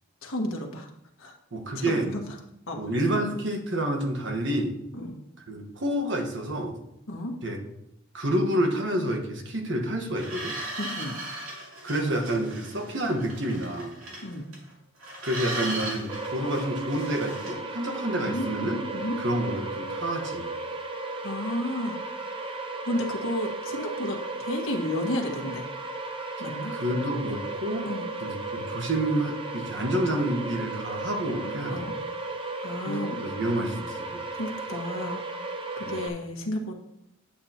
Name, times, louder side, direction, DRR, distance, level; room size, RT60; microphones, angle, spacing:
voice 1, 0.2-0.9 1.2-1.3 1.7-2.2 2.7-2.9 4.9-5.2 7.1-7.3 10.8-11.2 14.2-14.5 18.2-18.5 18.9-19.2 21.2-22.1 22.3-22.6 22.8-25.6 26.4-26.7 27.8-28.1 31.3-32.0 32.6-33.2 34.3-35.3 35.8-36.7, left 1 dB, 85° left, 2 dB, 1.5 m, -32 dB
voice 2, 1.5-2.1 2.8-4.8 5.5-6.8 7.4-7.6 8.1-10.6 11.8-13.9 15.2-18.8 19.2-20.5 26.7-27.9 28.2-31.7 32.8-34.2 35.8-35.9, right 1 dB, 60° right, 2 dB, 1.4 m, -28 dB
sound 1, 10.2-14.7 15.0-17.5, right 2 dB, 75° right, 2.5 m, -37 dB
sound 2, 16.1-36.1, right 2 dB, 25° right, 0.6 m, -35 dB
8.7 x 8.6 x 2.9 m, 0.81 s
head